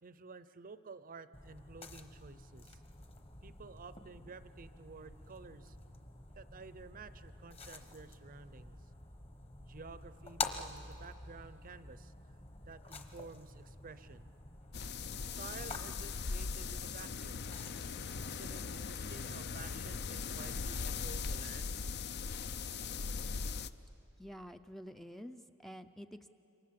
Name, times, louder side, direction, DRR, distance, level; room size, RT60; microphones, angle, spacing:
voice 1, 0.0-2.8 3.4-5.8 6.4-8.8 9.6-12.1 12.7-14.3 15.2-17.4 18.2-21.8, right 4 dB, 40° right, 14 dB, 0.6 m, -52 dB
sound 1, 1.3-19.5, left 3 dB, 25° left, 1.2 m, -48 dB
sound 2, 14.7-23.7, left 5 dB, 50° left, 0.6 m, -40 dB
voice 2, 24.2-26.3, equal, ahead, 8 dB, 0.5 m, -49 dB
27.0 x 24.0 x 7.6 m, 2.9 s
head